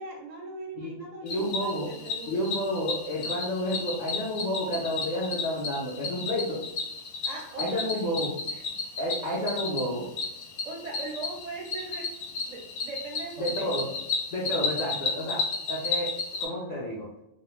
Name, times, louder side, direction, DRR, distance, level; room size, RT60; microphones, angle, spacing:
voice 1, 0.0-2.5 7.2-8.0 8.5-8.6 10.6-12.1 12.4-14.0, right 2 dB, 45° right, 0 dB, 0.5 m, -40 dB
voice 2, 1.2-1.9 2.3-6.6 7.6-8.3 9.0-10.1 13.4-13.8 14.3-15.4 15.7-16.1 16.4-17.1, equal, 55° left, -6 dB, 0.5 m, -30 dB
Cricket, 1.3-16.5, left 4 dB, 75° left, 0.9 m, -33 dB
2.3 x 2.1 x 3.0 m, 0.85 s
omnidirectional pair, 1.3 m